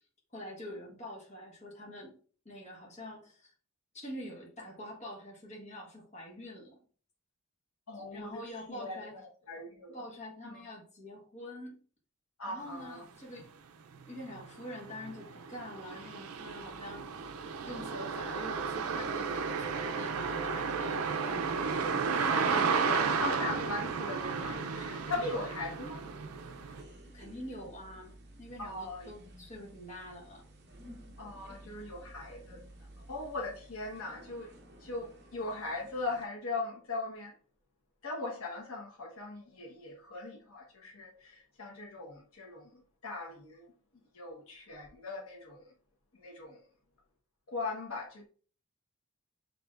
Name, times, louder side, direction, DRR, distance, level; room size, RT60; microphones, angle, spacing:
voice 1, 0.3-2.2 2.4-3.5 3.9-6.8 7.9-9.1 9.9-11.8 12.5-13.5 14.1-17.1 17.6-21.1 22.1-22.9 27.1-30.4, left 1 dB, 30° left, 1.3 m, -45 dB
voice 2, 7.9-8.4 8.7-9.0 9.5-10.0 10.5-10.6 12.4-13.0 22.2-26.0 28.6-29.1 31.2-32.6 33.1-34.5 34.8-37.3 38.0-43.6 44.1-45.7 46.1-46.6 47.5-48.3, left 3 dB, 75° left, 1.2 m, -39 dB
sound 1, 13.4-13.5 13.9-26.8, right 5 dB, 80° right, 0.5 m, -33 dB
sound 2, 16.3-36.2, equal, 45° right, 0.9 m, -52 dB
6.4 x 3.2 x 2.5 m
head